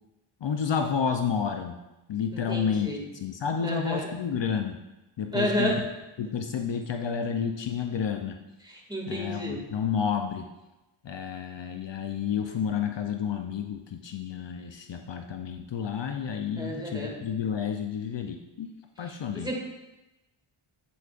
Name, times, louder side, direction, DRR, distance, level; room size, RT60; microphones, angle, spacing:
voice 1, 0.4-1.8 2.1-4.8 5.2-5.7 6.2-8.4 9.1-10.5 11.0-18.7 19.0-19.6, left 7 dB, 60° left, 5 dB, 0.7 m, -30 dB
voice 2, 2.3-3.0 3.6-4.1 5.3-5.8 8.7-9.6 16.6-17.2 19.1-19.6, equal, 10° right, -1 dB, 2.1 m, -31 dB
8.4 x 8.0 x 2.5 m, 1.0 s
cardioid pair, 65°, 50 cm